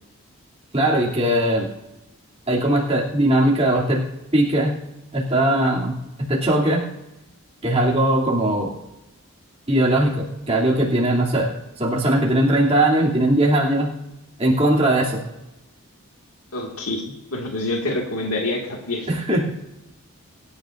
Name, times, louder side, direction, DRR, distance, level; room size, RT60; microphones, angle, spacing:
voice 1, 0.7-1.7 2.5-4.0 4.3-4.8 5.1-6.8 7.6-8.7 9.7-11.5 11.8-13.9 14.4-15.2 19.1-19.5, right 1 dB, 25° right, -5 dB, 2.9 m, -19 dB
voice 2, 16.5-19.5, left 2 dB, 85° left, 0 dB, 2.1 m, -27 dB
24.0 x 11.0 x 2.6 m, 0.93 s
head